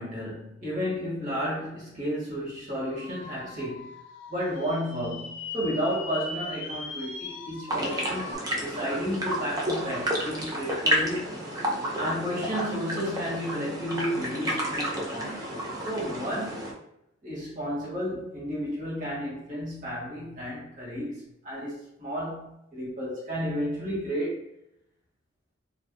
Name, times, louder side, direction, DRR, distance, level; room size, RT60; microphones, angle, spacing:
voice 1, 0.0-3.9 4.3-11.4 12.0-16.7 17.2-24.4, equal, 40° right, -6 dB, 1.5 m, -32 dB
sound 1, 2.7-8.3, left 4 dB, 65° left, 0.5 m, -40 dB
sound 2, 7.7-16.7, equal, 20° right, 0.5 m, -31 dB
2.6 x 2.4 x 3.6 m, 0.81 s
head